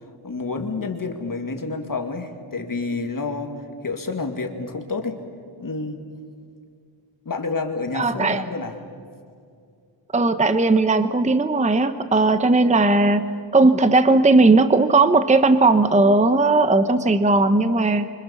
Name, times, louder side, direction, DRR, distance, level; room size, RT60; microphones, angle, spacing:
voice 1, 0.2-3.6 3.8-5.2 5.6-6.1 7.3-8.8, left 3 dB, 40° left, 4 dB, 2.3 m, -29 dB
voice 2, 7.9-8.4 10.1-18.1, right 3 dB, 15° right, 10 dB, 0.8 m, -17 dB
30.0 x 25.0 x 7.1 m, 2.3 s
wide cardioid pair, 170°, 49 cm